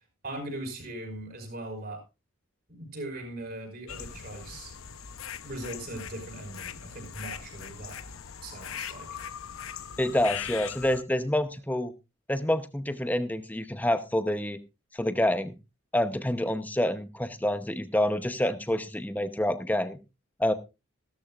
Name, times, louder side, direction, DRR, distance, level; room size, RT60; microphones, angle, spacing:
voice 1, 0.2-2.0 2.7-4.8 5.4-8.0 8.4-9.4, right 1 dB, 45° right, 4 dB, 5.2 m, -40 dB
sound 1, 3.9-11.0, left 8 dB, 85° left, 0.8 m, -40 dB
voice 2, 10.0-11.9 12.3-14.6 14.9-15.5 15.9-20.0 20.4-20.5, left 1 dB, 10° left, 11 dB, 0.8 m, -27 dB
15.5 x 13.5 x 2.5 m, 0.26 s
head